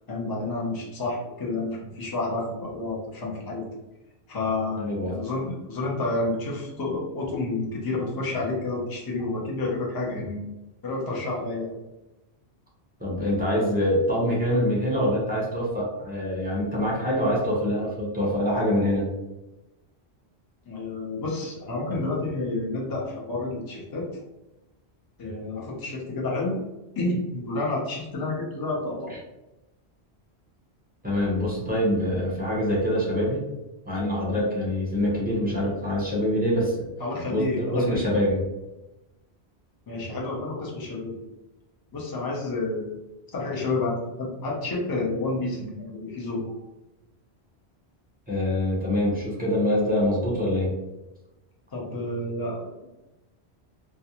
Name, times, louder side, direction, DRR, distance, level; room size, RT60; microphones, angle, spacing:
voice 1, 0.1-3.7 4.3-10.4 10.8-11.7 20.7-24.1 25.2-26.6 27.0-29.1 37.0-38.0 39.9-41.2 41.9-43.0 43.3-46.6 51.7-52.9, left 2 dB, 30° left, -3 dB, 0.5 m, -30 dB
voice 2, 4.8-5.1 13.0-19.1 31.0-33.4 33.9-36.9 37.3-38.4 48.3-50.7, left 1 dB, 10° right, -5 dB, 0.6 m, -25 dB
2.3 x 2.2 x 2.8 m, 1.0 s
omnidirectional pair, 1.1 m